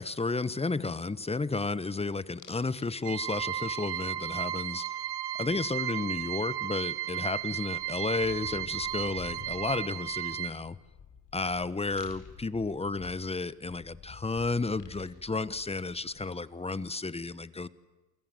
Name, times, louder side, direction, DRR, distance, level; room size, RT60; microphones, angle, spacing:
voice 1, 0.0-4.8 5.4-10.8 11.3-17.7, left 3 dB, 15° left, 16 dB, 1.0 m, -32 dB
sound 1, 2.4-2.9 3.2-3.7 6.1-6.2 6.5-16.5, left 6 dB, 40° left, 4.2 m, -51 dB
sound 2, 3.0-10.5, right 13 dB, 55° right, 1.3 m, -34 dB
28.0 x 25.5 x 7.7 m, 1.1 s
supercardioid pair, 95°, 46 cm